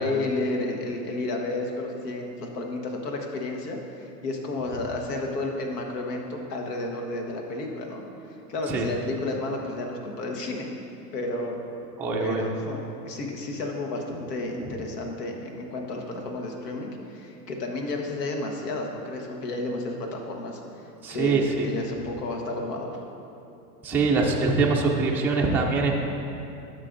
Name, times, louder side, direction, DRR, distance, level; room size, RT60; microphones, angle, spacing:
voice 1, 0.0-8.0 8.5-10.7 11.1-11.6 12.2-20.6 21.1-23.0, left 2 dB, 80° left, 2 dB, 1.4 m, -31 dB
voice 2, 12.0-12.4 14.6-14.7 21.0-21.7 23.8-26.0, right 4 dB, 5° right, -2 dB, 0.4 m, -23 dB
12.0 x 6.6 x 2.6 m, 2.8 s
hypercardioid pair, 110°, 48 cm